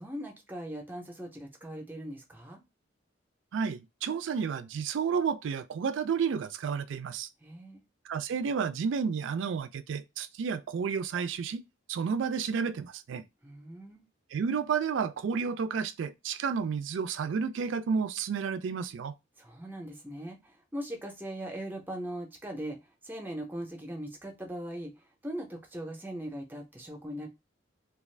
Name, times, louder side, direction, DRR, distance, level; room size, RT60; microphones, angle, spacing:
voice 1, 0.0-2.6 7.4-7.8 13.4-14.1 19.4-22.8 23.0-27.3, right 1 dB, 10° right, 0.6 m, -40 dB
voice 2, 3.5-7.3 8.1-11.6 11.9-13.2 14.3-19.2, right 6 dB, 75° right, 0.3 m, -31 dB
2.4 x 2.3 x 3.2 m
head